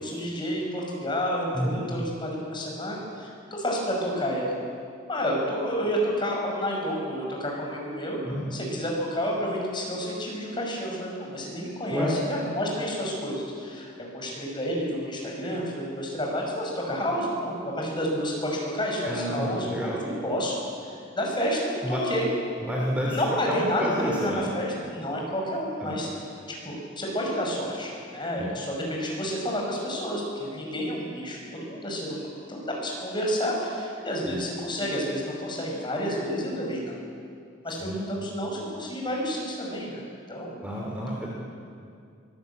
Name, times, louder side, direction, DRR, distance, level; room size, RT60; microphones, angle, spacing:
voice 1, 0.0-4.5 5.1-8.2 8.5-20.6 20.8-22.3 23.1-26.1 26.5-32.2 32.5-37.0 37.6-40.0 40.3-40.6, equal, 25° left, -1 dB, 5.7 m, -30 dB
voice 2, 1.5-1.8 8.2-8.6 11.9-12.2 19.0-20.0 21.8-22.0 22.6-23.2 23.5-24.5 25.8-26.0 28.4-28.6 34.2-34.4 37.8-38.1 40.6-41.3, equal, 5° right, -3 dB, 3.0 m, -30 dB
23.5 x 17.5 x 8.5 m, 2.3 s
head